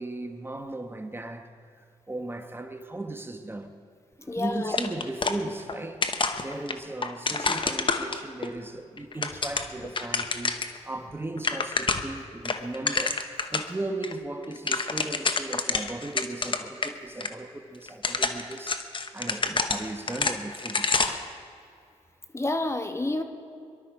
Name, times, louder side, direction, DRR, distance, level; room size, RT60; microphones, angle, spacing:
voice 1, 0.0-1.5 1.8-3.7 4.2-6.1 6.4-21.3, right 2 dB, 20° right, 1.1 m, -37 dB
voice 2, 4.3-4.7 22.3-23.2, left 2 dB, 20° left, 1.3 m, -28 dB
sound 1, 4.7-5.8 6.0-8.5 9.0-10.8 11.1-11.2 11.4-12.2 12.4-13.7 14.0-14.1 14.4-16.9 17.2-17.3 17.9-21.3, left 4 dB, 40° left, 1.1 m, -28 dB
23.5 x 12.0 x 4.8 m
cardioid pair, 55°, 12 cm